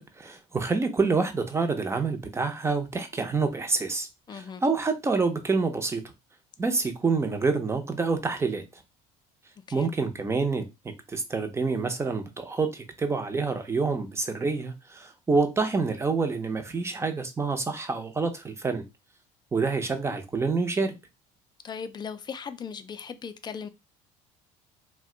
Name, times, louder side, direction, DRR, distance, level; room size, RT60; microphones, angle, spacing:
voice 1, 0.0-6.0 6.6-8.6 9.7-10.7 11.1-18.8 19.5-20.9, right 4 dB, 15° right, 0.6 m, -27 dB
voice 2, 4.3-4.6 9.7-9.9 21.6-23.7, left 6 dB, 30° left, 0.4 m, -38 dB
2.6 x 2.2 x 3.7 m
supercardioid pair, 100°, 16 cm